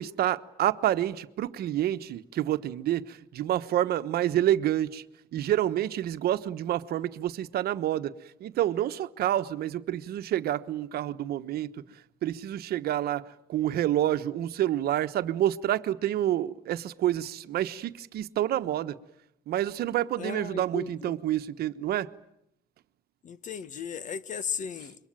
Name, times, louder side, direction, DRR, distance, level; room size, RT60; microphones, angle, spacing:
voice 1, 0.0-5.0 5.3-8.1 8.4-11.7 12.2-19.0 19.5-22.1, right 12 dB, 65° right, 1.2 m, -28 dB
voice 2, 20.2-21.2 23.2-25.0, left 6 dB, 50° left, 1.5 m, -36 dB
26.5 x 23.5 x 9.0 m
cardioid pair, 110°, 17 cm